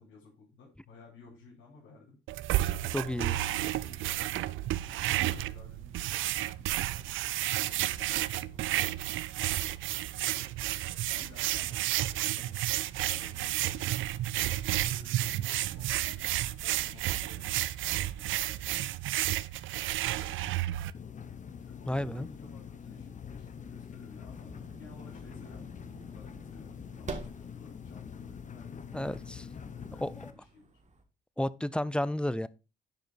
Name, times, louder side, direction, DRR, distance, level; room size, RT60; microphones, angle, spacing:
voice 1, 0.0-2.2 3.4-4.2 4.8-10.5 11.1-12.6 13.0-14.3 14.5-19.6 20.0-20.8 21.6-30.7, left 4 dB, 85° left, 5.7 m, -56 dB
sound 1, 2.3-20.9, right 14 dB, 80° right, 0.5 m, -31 dB
voice 2, 2.9-3.4 21.9-22.3 28.9-29.4 30.0-30.1 31.4-32.5, left 1 dB, 5° left, 0.5 m, -31 dB
sound 2, 20.9-30.3, left 7 dB, 40° left, 1.0 m, -45 dB
sound 3, 24.3-31.0, right 3 dB, 35° right, 1.8 m, -48 dB
10.5 x 5.2 x 4.4 m
cardioid pair, 90°, 20 cm